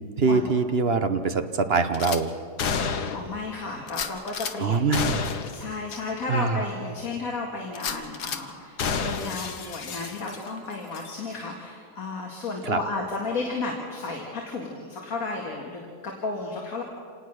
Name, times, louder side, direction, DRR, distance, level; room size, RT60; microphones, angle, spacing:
voice 1, 0.2-2.3 4.6-5.3 6.3-6.6 12.6-12.8, right 4 dB, 45° right, 9 dB, 1.0 m, -23 dB
Gunshot gunfire / Glass, 1.9-2.2 2.6-3.4 3.9-4.5 4.9-5.6 5.9-6.0 6.5-6.6 7.7-8.4 8.8-10.6 10.9-11.1, left 6 dB, 75° left, 1.7 m, -30 dB
voice 2, 3.1-4.9 5.5-16.8, left 3 dB, 60° left, -1 dB, 2.5 m, -33 dB
26.5 x 19.0 x 6.5 m, 2.2 s
omnidirectional pair, 1.7 m